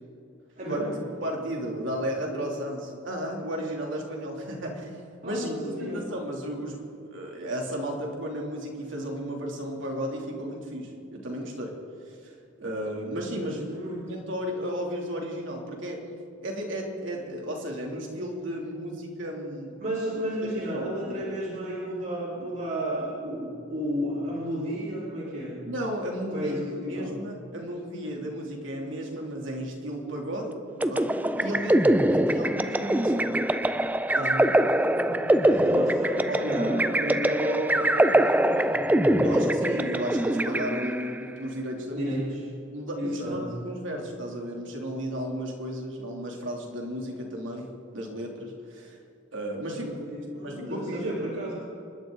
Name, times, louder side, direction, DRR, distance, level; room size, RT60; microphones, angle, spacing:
voice 1, 0.6-0.9 5.2-6.0 13.4-14.1 19.8-25.5 26.3-27.1 34.9-39.4 41.9-42.4 43.0-43.4 49.7-51.5, equal, 45° right, -8 dB, 4.5 m, -32 dB
voice 2, 1.2-4.9 5.2-5.5 5.8-6.8 7.1-11.7 12.0-12.3 12.6-16.0 16.4-19.8 20.6-21.3 25.6-26.6 26.9-33.4 34.1-34.5 35.7-35.9 36.3-36.8 39.2-42.1 42.7-49.0 49.3-49.9 50.4-51.1, equal, 70° right, 0 dB, 3.0 m, -34 dB
sound 1, 30.8-41.2, right 1 dB, 10° right, 0.3 m, -23 dB
27.5 x 12.0 x 3.9 m, 2.5 s
head